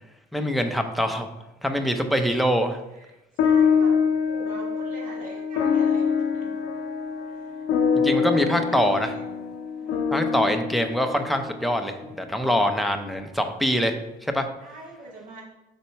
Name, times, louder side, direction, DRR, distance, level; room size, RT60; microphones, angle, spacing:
voice 1, 0.3-1.3 1.6-2.8 7.9-9.1 10.1-14.0 14.2-14.5, equal, ahead, 5 dB, 0.6 m, -24 dB
voice 2, 2.9-4.0 4.3-6.5 7.3-9.5 9.8-10.3 14.6-15.4, right 2 dB, 50° right, -2 dB, 2.0 m, -45 dB
sound 1, 3.4-12.1, left 6 dB, 80° left, 0.6 m, -25 dB
4.3 x 4.1 x 5.6 m, 0.98 s
cardioid pair, 110°, 17 cm